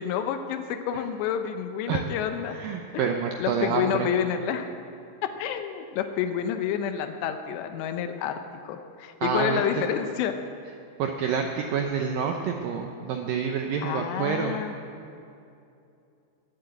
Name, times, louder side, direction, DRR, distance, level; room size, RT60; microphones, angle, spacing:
voice 1, 0.0-2.6 2.9-3.1 3.4-4.7 5.2-8.4 8.6-10.3 13.8-14.7, left 9 dB, 85° left, 7 dB, 3.0 m, -29 dB
voice 2, 2.5-4.1 9.2-9.8 11.0-14.5, right 6 dB, 75° right, 3 dB, 2.1 m, -28 dB
21.5 x 7.9 x 8.2 m, 2.6 s
omnidirectional pair, 4.9 m